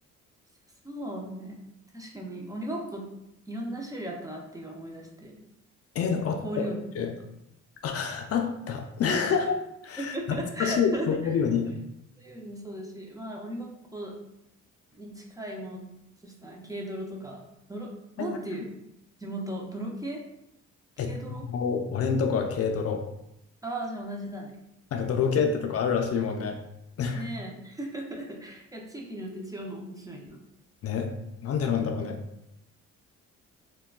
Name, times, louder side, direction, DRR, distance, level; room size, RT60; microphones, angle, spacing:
voice 1, 0.8-1.6 1.9-3.0 3.5-5.5 6.2-6.8 9.3-9.4 10.0-11.4 12.2-14.1 14.9-15.9 16.2-18.7 19.2-20.2 21.0-21.5 23.6-24.5 25.3-25.7 27.1-30.4, right 1 dB, 10° right, -1 dB, 0.5 m, -37 dB
voice 2, 6.0-6.4 7.0-7.1 7.8-11.7 18.2-18.4 21.0-23.1 24.9-26.6 27.0-27.2 30.8-31.1 31.4-32.2, left 6 dB, 50° left, 4 dB, 0.4 m, -27 dB
3.4 x 2.2 x 2.3 m, 0.81 s
cardioid pair, 90°, 30 cm